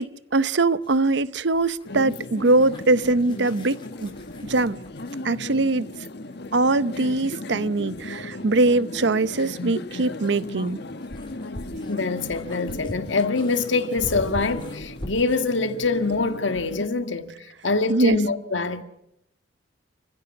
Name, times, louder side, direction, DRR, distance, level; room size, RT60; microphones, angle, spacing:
voice 1, 0.0-4.1 4.5-4.8 5.2-5.9 6.5-10.8 17.9-18.2, right 2 dB, 65° right, 0.8 m, -22 dB
sound 1, 0.7-5.2 7.6-7.7 9.7-15.5, equal, 25° left, 3.9 m, -41 dB
sound 2, 1.8-16.9, left 2 dB, 60° left, 1.5 m, -36 dB
voice 2, 11.7-17.3 17.6-18.8, left 3 dB, 85° left, 1.8 m, -24 dB
29.5 x 16.0 x 6.0 m
head